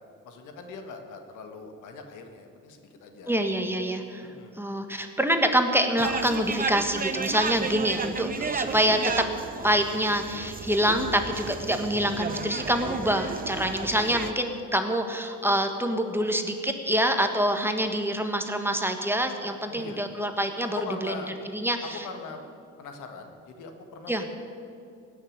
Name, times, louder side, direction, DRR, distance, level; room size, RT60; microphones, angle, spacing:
voice 1, 0.2-3.4 4.2-4.6 19.7-20.0 20.7-21.3 21.9-22.4 22.8-24.3, left 4 dB, 80° left, 5 dB, 1.7 m, -41 dB
voice 2, 3.3-4.2 4.6-9.2 9.6-21.1 21.5-22.1 24.1-24.2, equal, 5° right, 5 dB, 1.5 m, -26 dB
sound 1, 6.0-14.3, right 5 dB, 30° right, 0.9 m, -33 dB
16.5 x 7.0 x 9.8 m, 2.5 s
cardioid pair, 90°, 30 cm